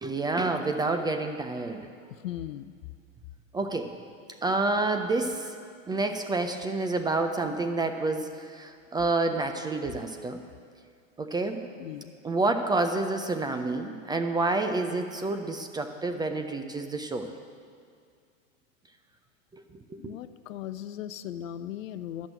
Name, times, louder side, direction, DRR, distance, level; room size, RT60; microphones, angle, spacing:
voice 1, 0.0-1.9 3.5-4.0 4.4-5.6 5.9-10.4 11.2-11.6 12.2-17.3 19.5-19.6 19.9-20.1, right 3 dB, 10° right, 6 dB, 0.4 m, -28 dB
voice 2, 2.2-2.7 11.8-12.1 20.0-22.3, left 11 dB, 75° left, 13 dB, 0.6 m, -38 dB
12.0 x 6.3 x 9.0 m, 2.2 s
hypercardioid pair, 100°, 40 cm